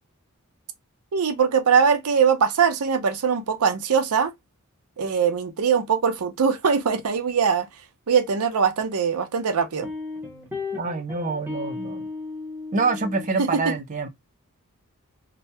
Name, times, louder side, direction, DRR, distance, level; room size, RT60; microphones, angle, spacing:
voice 1, 1.1-4.3 5.0-7.7 8.1-9.9 13.4-13.7, right 6 dB, 85° right, 0.6 m, -21 dB
sound 1, 9.8-13.3, left 3 dB, 10° right, 0.8 m, -34 dB
voice 2, 10.7-12.0 12.7-14.1, right 3 dB, 35° right, 0.5 m, -26 dB
2.8 x 2.1 x 3.2 m
head